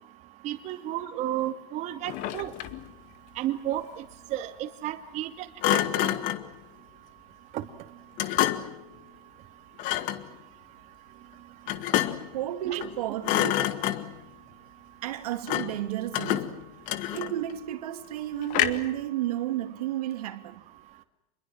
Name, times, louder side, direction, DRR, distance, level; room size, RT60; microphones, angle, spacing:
voice 1, 0.4-2.5 3.4-4.0 4.3-5.5 5.7-6.2 7.5-7.6 12.6-12.8, right 13 dB, 35° right, 2.5 m, -32 dB
Thump thud, 2.0-2.9 5.6-6.5 8.2-8.8 9.8-10.3 11.7-12.3 12.7-13.0 13.2-14.2 15.5-15.8 16.1-17.5 18.5-19.0, left 13 dB, 45° left, 2.0 m, -28 dB
voice 2, 12.3-13.5 15.0-16.6 17.1-20.6, right 13 dB, 80° right, 2.9 m, -32 dB
28.0 x 22.0 x 7.6 m
supercardioid pair, 145°, 19 cm